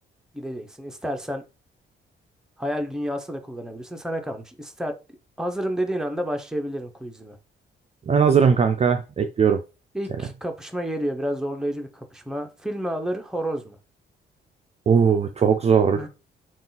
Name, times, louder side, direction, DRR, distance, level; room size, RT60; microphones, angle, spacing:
voice 1, 0.3-1.4 2.6-5.0 5.4-7.4 9.9-13.8 15.9-16.1, equal, 5° right, 0.8 m, -30 dB
voice 2, 8.1-9.6 14.9-16.1, right 6 dB, 35° right, 0.4 m, -19 dB
3.6 x 2.5 x 3.9 m
cardioid pair, 90°, 20 cm